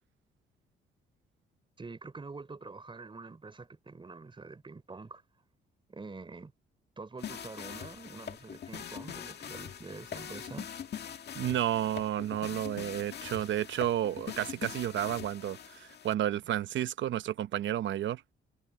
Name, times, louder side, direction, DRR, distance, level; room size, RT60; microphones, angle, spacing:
voice 1, 1.8-5.2 5.9-6.5 7.0-10.7, right 3 dB, 25° right, 3.7 m, -46 dB
sound 1, 7.2-16.1, left 8 dB, 55° left, 2.0 m, -43 dB
voice 2, 11.3-18.2, right 11 dB, 70° right, 0.9 m, -31 dB
cardioid pair, 90°, 20 cm